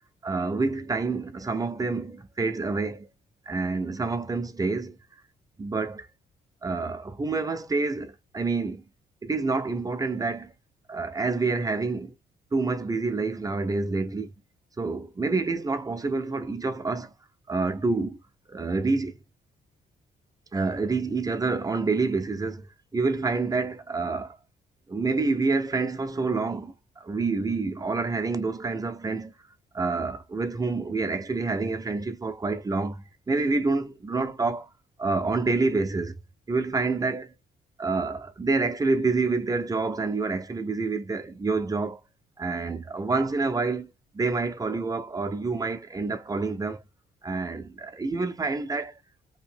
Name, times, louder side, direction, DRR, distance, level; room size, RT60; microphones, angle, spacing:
voice 1, 0.2-3.1 3.5-5.0 5.6-6.1 6.6-8.8 9.2-10.5 10.9-12.1 12.5-14.3 14.8-17.1 17.5-18.2 18.5-19.1 20.5-22.7 22.9-24.4 24.9-26.7 27.0-29.3 29.7-34.7 35.0-36.1 36.5-37.3 37.8-42.0 42.4-43.9 44.1-46.8 47.2-48.9, right 3 dB, 20° right, 0.4 m, -27 dB
2.8 x 2.5 x 3.7 m
cardioid pair, 90°, 20 cm